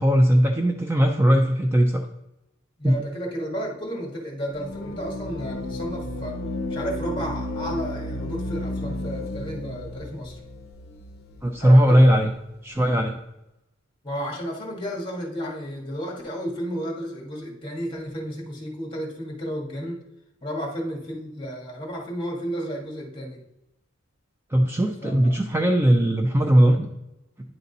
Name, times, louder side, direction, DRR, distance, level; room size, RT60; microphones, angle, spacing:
voice 1, 0.0-2.1 2.8-3.0 11.4-12.3 12.6-13.2 24.5-26.9, equal, 10° right, 3 dB, 0.4 m, -18 dB
voice 2, 2.8-6.4 6.7-10.4 11.6-12.1 14.0-20.0 20.4-23.4 25.0-25.3, equal, 25° left, -1 dB, 1.8 m, -32 dB
sound 1, 4.6-11.7, left 1 dB, 50° left, 0.6 m, -33 dB
10.0 x 4.0 x 4.1 m, 0.90 s
head